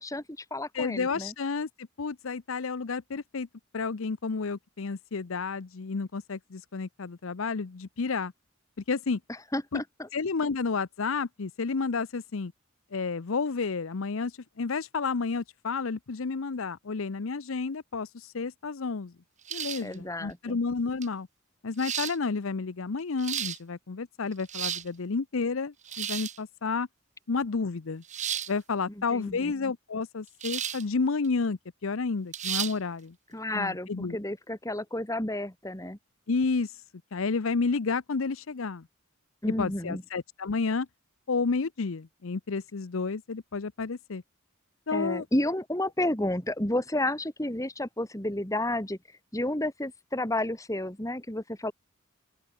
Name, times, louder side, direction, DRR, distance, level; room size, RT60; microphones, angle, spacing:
voice 1, 0.0-1.3 9.3-10.1 19.8-20.6 29.0-29.5 33.3-36.0 39.4-40.0 44.9-49.0 49.3-51.7, left 1 dB, 15° left, 2.7 m, -31 dB
voice 2, 0.7-1.7 2.0-3.5 3.7-8.3 8.9-9.2 9.7-9.8 10.1-12.5 12.9-14.3 14.6-18.1 18.3-19.1 19.5-21.3 21.6-26.9 27.3-28.0 28.5-33.1 33.5-34.2 36.3-36.7 37.1-38.8 39.6-40.9 41.3-44.2 44.9-45.2, left 4 dB, 70° left, 0.7 m, -31 dB
sound 1, 19.5-19.9 21.0-21.1 21.8-22.2 23.0-23.6 24.3-24.9 25.8-26.4 28.1-28.5 30.4-30.8 31.2-31.3 32.3-32.7, right 9 dB, 35° right, 1.4 m, -33 dB
open air
head